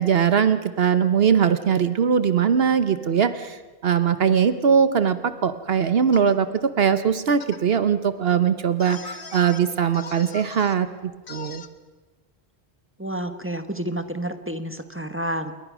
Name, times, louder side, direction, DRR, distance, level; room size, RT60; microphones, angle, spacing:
voice 1, 0.0-11.6, right 7 dB, 70° right, 11 dB, 1.1 m, -21 dB
sound 1, 6.1-6.3 7.3-7.6 8.8-9.6 9.9-10.8 11.3-11.7, left 4 dB, 60° left, 1.3 m, -39 dB
voice 2, 13.0-15.5, right 1 dB, 10° right, 8 dB, 1.3 m, -30 dB
28.0 x 22.0 x 6.2 m, 1.2 s
omnidirectional pair, 1.0 m